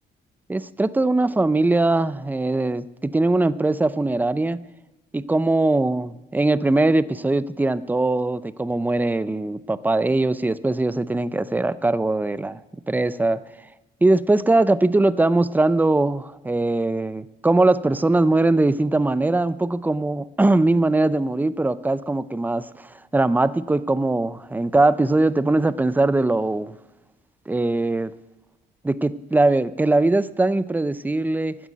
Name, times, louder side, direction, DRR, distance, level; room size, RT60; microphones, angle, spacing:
voice 1, 0.5-4.6 5.1-12.6 12.9-13.4 14.0-26.8 27.5-28.1 28.8-31.6, right 2 dB, 10° right, 16 dB, 0.5 m, -21 dB
12.5 x 8.1 x 9.2 m, 1.0 s
cardioid pair, 90°, 20 cm